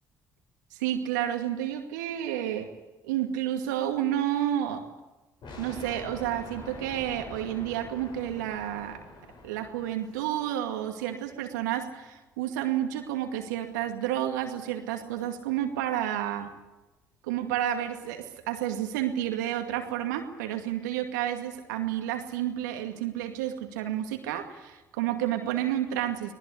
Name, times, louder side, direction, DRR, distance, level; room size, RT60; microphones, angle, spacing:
voice 1, 0.7-2.7 3.0-4.8 5.6-9.0 9.4-16.5 17.3-26.3, right 11 dB, 80° right, 5 dB, 2.3 m, -30 dB
sound 1, 5.4-10.3, left 3 dB, 55° left, 7.3 m, -45 dB
25.0 x 19.0 x 8.5 m, 1.1 s
hypercardioid pair, 55°, 10 cm